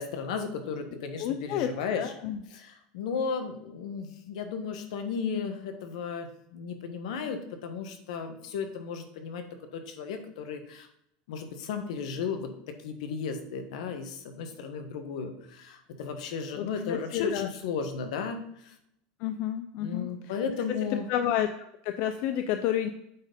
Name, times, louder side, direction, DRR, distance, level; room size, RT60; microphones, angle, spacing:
voice 1, 0.0-2.1 2.5-9.4 9.7-10.9 11.3-18.7 19.8-21.1, left 6 dB, 80° left, 7 dB, 1.3 m, -34 dB
voice 2, 1.2-1.7 2.0-2.4 16.6-17.5 19.2-20.1 20.7-20.8 21.1-22.9, left 11 dB, 60° left, 8 dB, 0.5 m, -30 dB
8.5 x 4.4 x 5.1 m, 0.76 s
supercardioid pair, 130°, 4 cm